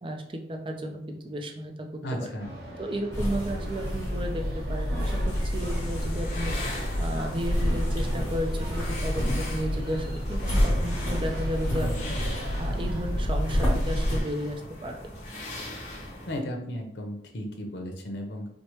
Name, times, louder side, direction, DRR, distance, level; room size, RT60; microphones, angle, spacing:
voice 1, 0.0-2.3 2.8-4.4 4.7-15.0, equal, 30° right, 3 dB, 0.4 m, -34 dB
voice 2, 2.0-2.5 11.7-12.0 16.3-18.5, equal, 85° left, 3 dB, 0.7 m, -34 dB
sound 1, 2.4-13.3, right 1 dB, 65° right, 0.8 m, -43 dB
sound 2, 3.1-14.2, equal, 15° left, 1.2 m, -28 dB
sound 3, 5.3-16.4, left 1 dB, 40° left, 0.9 m, -40 dB
4.5 x 2.1 x 3.0 m, 0.72 s
head